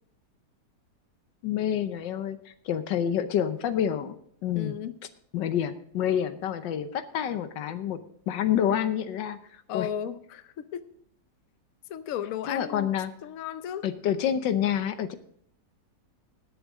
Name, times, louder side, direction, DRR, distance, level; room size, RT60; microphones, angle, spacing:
voice 1, 1.4-4.1 4.4-4.8 5.3-9.4 9.7-9.9 12.5-13.1 13.8-15.1, left 9 dB, 85° left, 11 dB, 1.5 m, -28 dB
voice 2, 4.5-5.0 9.7-10.8 11.9-12.9 13.2-13.9, left 9 dB, 60° left, 12 dB, 1.0 m, -34 dB
19.5 x 7.3 x 3.6 m, 0.65 s
omnidirectional pair, 1.9 m